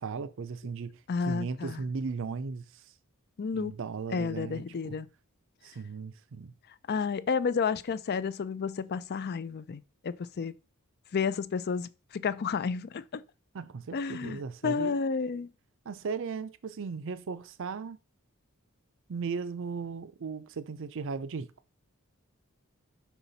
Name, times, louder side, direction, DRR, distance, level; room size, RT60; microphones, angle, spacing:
voice 1, 0.0-1.0 1.3-2.7 3.5-5.0 5.6-6.5 13.5-15.0 15.9-18.0 19.1-21.5, right 5 dB, 60° right, 0.5 m, -36 dB
voice 2, 1.1-1.8 3.4-3.7 4.1-5.1 6.9-10.5 11.1-13.2 13.9-15.5, left 5 dB, 45° left, 0.4 m, -31 dB
5.8 x 5.6 x 4.0 m
head